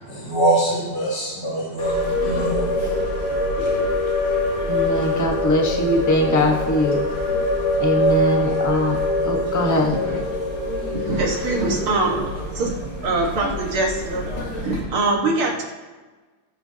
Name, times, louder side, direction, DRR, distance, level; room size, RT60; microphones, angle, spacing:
voice 1, 0.0-3.4, right 2 dB, 70° left, -10 dB, 3.9 m, -24 dB
sound 1, 1.8-14.8, left 1 dB, 55° left, 4.4 m, -24 dB
voice 2, 4.7-7.1 7.8-9.0 9.2-10.0, left 1 dB, 10° left, 1 dB, 0.8 m, -21 dB
voice 3, 10.9-12.3 12.5-12.7 13.0-14.3 14.6-15.6, right 2 dB, 75° right, -1 dB, 2.4 m, -23 dB
19.0 x 9.1 x 2.9 m, 1.3 s
omnidirectional pair, 2.4 m